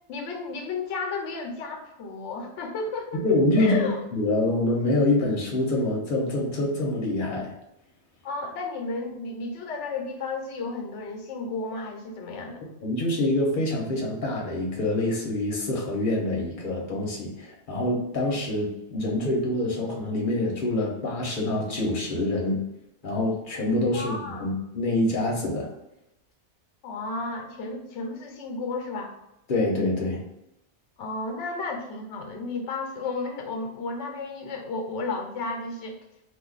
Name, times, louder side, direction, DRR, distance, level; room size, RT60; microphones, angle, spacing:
voice 1, 0.1-3.3 3.6-4.0 8.2-12.6 23.9-24.5 26.8-29.1 31.0-36.0, left 3 dB, 85° left, 3 dB, 0.9 m, -33 dB
voice 2, 3.2-7.5 12.8-22.6 23.0-25.7 29.5-30.2, left 2 dB, 50° left, -1 dB, 0.9 m, -26 dB
2.6 x 2.4 x 3.8 m, 0.88 s
omnidirectional pair, 1.2 m